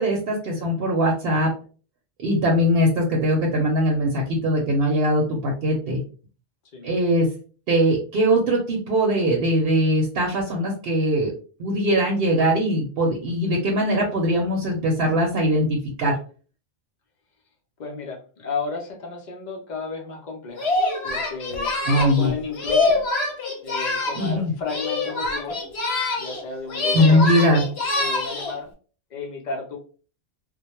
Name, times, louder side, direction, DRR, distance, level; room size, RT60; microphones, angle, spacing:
voice 1, 0.0-1.5 2.2-6.0 6.8-7.3 7.7-11.3 11.6-16.2 21.9-22.3 24.1-24.5 26.9-27.6, equal, 65° right, 0 dB, 0.8 m, -21 dB
voice 2, 17.8-23.0 23.6-25.7 26.2-27.3 27.9-28.7 29.1-29.8, left 4 dB, 50° left, 0 dB, 0.7 m, -33 dB
Singing, 20.6-24.4 24.7-26.4 26.7-28.6, left 3 dB, 70° left, 1.1 m, -25 dB
2.2 x 2.1 x 2.9 m, 0.39 s
omnidirectional pair, 1.1 m